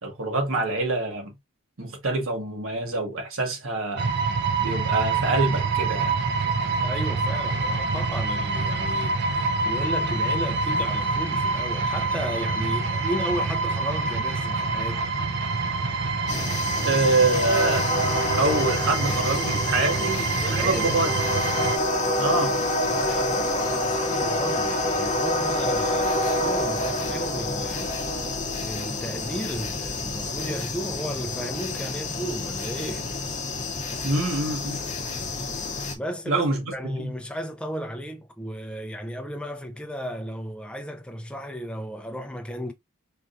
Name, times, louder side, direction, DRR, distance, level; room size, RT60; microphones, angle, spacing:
voice 1, 0.0-1.3 1.8-4.1 4.6-6.1 16.8-17.9 18.3-21.1 22.2-22.6 34.0-34.8 36.3-37.1, right 2 dB, 70° right, 1.3 m, -25 dB
sound 1, 4.0-21.8, right 3 dB, 55° right, 0.6 m, -26 dB
voice 2, 6.8-15.2 19.8-19.9 20.4-21.1 22.9-27.9 28.7-33.1 36.0-42.7, equal, 5° left, 0.5 m, -34 dB
sound 2, 16.3-36.0, left 1 dB, 35° left, 0.8 m, -27 dB
4.5 x 2.6 x 2.4 m
head